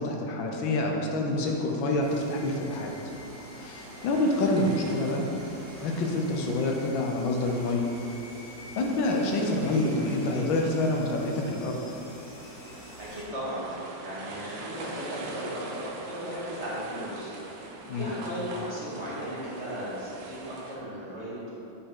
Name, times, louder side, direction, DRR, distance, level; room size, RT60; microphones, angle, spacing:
voice 1, 0.0-2.9 3.5-5.3 5.8-7.8 8.8-11.8 17.8-18.1, left 2 dB, 80° left, 1 dB, 1.6 m, -27 dB
sound 1, 1.3-20.8, right 2 dB, 70° right, 1.5 m, -45 dB
sound 2, 2.0-13.2, left 1 dB, 65° left, 2.0 m, -47 dB
voice 2, 13.0-13.7 14.0-17.3 17.7-21.5, equal, 35° right, -9 dB, 2.0 m, -36 dB
8.4 x 5.6 x 3.7 m, 2.9 s
omnidirectional pair, 2.1 m